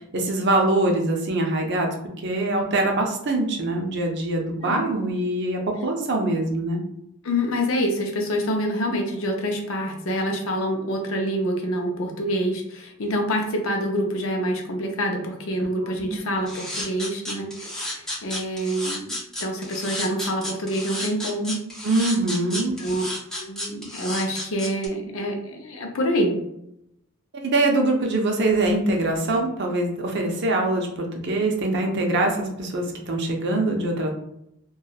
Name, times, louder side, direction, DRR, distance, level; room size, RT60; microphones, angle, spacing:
voice 1, 0.1-1.9 2.2-6.8 16.0-16.2 21.8-22.8 27.3-34.1, right 2 dB, 55° right, 2 dB, 0.5 m, -23 dB
voice 2, 4.6-4.9 7.2-21.6 22.5-23.0 23.4-26.4, equal, 65° left, 2 dB, 0.5 m, -26 dB
sound 1, 16.5-24.9, left 1 dB, 5° left, 0.4 m, -32 dB
2.8 x 2.3 x 2.3 m, 0.79 s
head